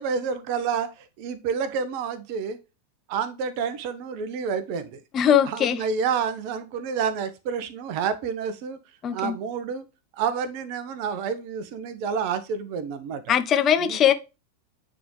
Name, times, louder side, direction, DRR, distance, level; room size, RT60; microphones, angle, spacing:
voice 1, 0.0-2.6 3.1-5.0 5.5-8.8 9.1-9.8 10.1-13.3 13.8-14.0, right 6 dB, 45° right, 0.9 m, -29 dB
voice 2, 5.1-5.8 9.0-9.3 13.3-14.1, left 9 dB, 30° left, 0.7 m, -20 dB
9.1 x 3.7 x 3.1 m
figure-of-eight pair, 90°, 0 cm